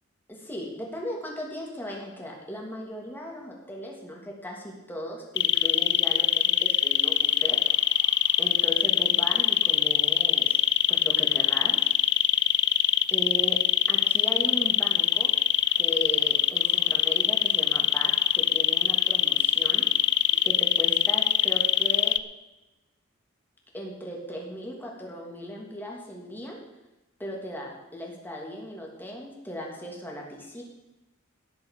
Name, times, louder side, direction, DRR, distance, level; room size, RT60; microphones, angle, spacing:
voice 1, 0.3-7.6 8.4-10.6 10.9-11.8 13.1-13.6 13.9-15.3 15.7-19.9 20.4-22.2 23.7-26.6 27.2-30.6, equal, 10° left, -2 dB, 2.9 m, -37 dB
sound 1, 5.4-22.2, left 12 dB, 60° left, 0.5 m, -22 dB
17.5 x 6.3 x 6.6 m, 0.98 s
head